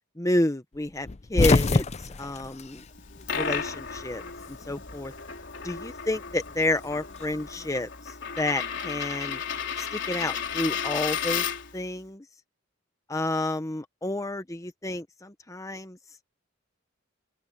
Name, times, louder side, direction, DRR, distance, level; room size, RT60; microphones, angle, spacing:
voice 1, 0.2-2.8 3.3-4.2 4.5-5.1 5.6-9.4 9.8-11.5 11.7-12.2 13.1-16.0, left 1 dB, 15° left, 0.9 m, -30 dB
sound 1, 1.0-3.6 3.9-4.9 6.1-7.6, left 3 dB, 30° left, 0.5 m, -26 dB
Coin (dropping), 2.9-11.8, left 7 dB, 60° left, 4.3 m, -33 dB
open air
head